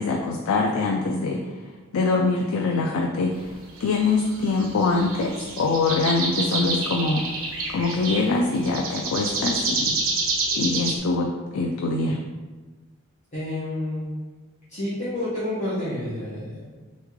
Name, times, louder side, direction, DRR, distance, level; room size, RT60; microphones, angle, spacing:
voice 1, 0.0-1.4 1.9-3.5 3.8-7.3 7.7-9.9 10.6-12.2, left 3 dB, 75° left, 1 dB, 0.4 m, -24 dB
sound 1, 3.7-11.0, right 3 dB, 70° right, 0.8 m, -28 dB
voice 2, 13.3-14.1 14.7-16.6, left 1 dB, 30° left, -12 dB, 1.1 m, -29 dB
3.5 x 3.1 x 3.6 m, 1.3 s
head